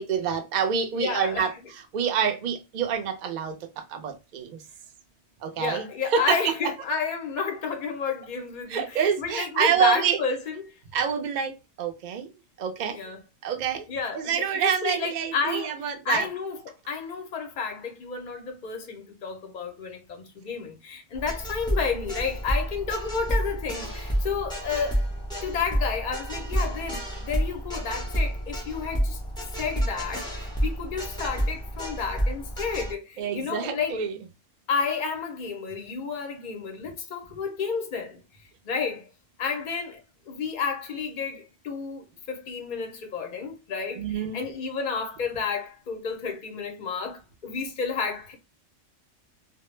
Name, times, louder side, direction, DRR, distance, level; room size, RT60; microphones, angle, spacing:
voice 1, 0.0-4.6 5.4-6.5 8.7-10.2 10.9-12.3 12.6-13.0 13.4-13.9 14.1-16.3 33.2-34.2 44.0-44.4, right 7 dB, 60° right, 0.4 m, -27 dB
voice 2, 1.0-1.5 5.6-10.6 12.9-13.2 13.9-16.6 16.9-25.1 25.4-29.2 29.6-34.0 34.7-38.2 38.6-39.1 39.4-48.3, left 5 dB, 55° left, 0.5 m, -31 dB
sound 1, 21.1-32.9, equal, 5° left, 0.5 m, -29 dB
2.1 x 2.0 x 3.0 m
omnidirectional pair, 1.3 m